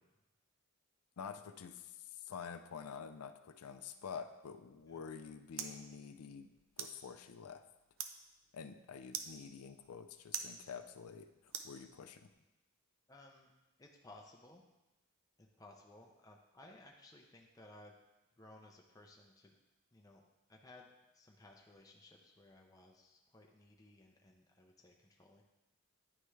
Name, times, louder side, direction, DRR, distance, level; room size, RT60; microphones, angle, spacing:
voice 1, 1.2-6.5 6.8-7.6 8.5-11.3 11.6-12.3, left 6 dB, 75° left, 9 dB, 0.4 m, -48 dB
sound 1, 4.8-12.3, right 8 dB, 60° right, 0.4 m, -49 dB
voice 2, 13.1-13.5 13.8-14.6 15.4-18.0 18.4-19.5 19.9-20.2 20.5-25.4, left 2 dB, 15° left, 1 dB, 0.5 m, -59 dB
9.7 x 3.4 x 3.1 m, 1.0 s
head